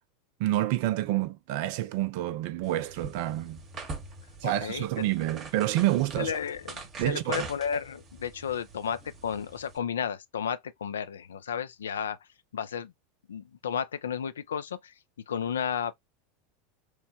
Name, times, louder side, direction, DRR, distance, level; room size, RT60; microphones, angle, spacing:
voice 1, 0.4-3.6 4.4-6.3 7.0-7.5, right 15 dB, 55° right, 0.4 m, -28 dB
sound 1, 2.6-9.8, right 4 dB, 35° right, 0.9 m, -43 dB
voice 2, 4.4-5.1 6.2-12.2 12.5-12.9 13.3-14.9 15.3-15.9, left 7 dB, 75° left, 0.3 m, -33 dB
3.1 x 2.1 x 2.6 m
figure-of-eight pair, 85°, 0 cm